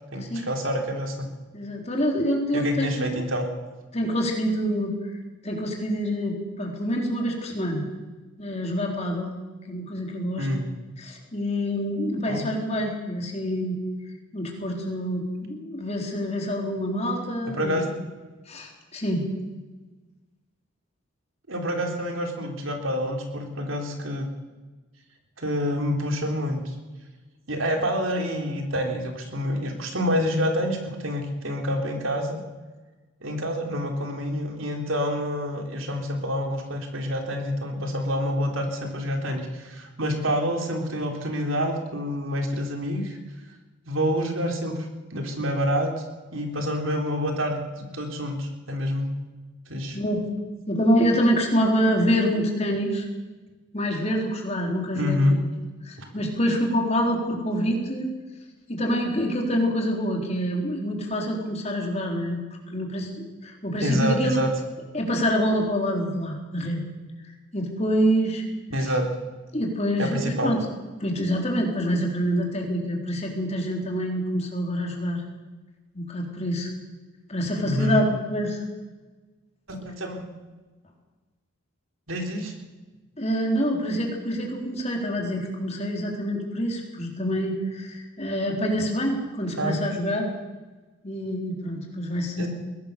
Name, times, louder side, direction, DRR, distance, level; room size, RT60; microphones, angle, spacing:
voice 1, 0.1-1.3 2.5-3.5 10.4-10.7 12.3-12.5 17.5-17.9 21.5-24.3 25.4-26.8 27.5-32.4 33.2-43.2 43.8-44.7 45.1-45.9 46.3-49.1 49.7-50.0 54.9-55.4 56.0-56.1 63.8-64.5 68.7-69.0 70.0-70.5 77.6-78.0 79.8-80.3 82.1-82.5 89.6-89.8 92.4-92.5, equal, 75° right, 3 dB, 3.6 m, -27 dB
voice 2, 1.5-3.1 3.9-4.9 5.4-7.9 8.4-9.3 9.7-10.5 11.0-13.8 14.3-17.8 18.5-19.2 49.9-50.3 50.7-53.1 53.7-55.5 55.8-58.1 58.7-62.4 62.7-64.4 64.9-66.8 67.5-68.4 68.8-68.9 69.5-70.6 71.0-75.2 75.9-76.7 77.3-78.6 83.2-90.3 91.0-92.5, equal, 30° left, 1 dB, 4.1 m, -26 dB
22.0 x 17.5 x 6.9 m, 1.2 s
head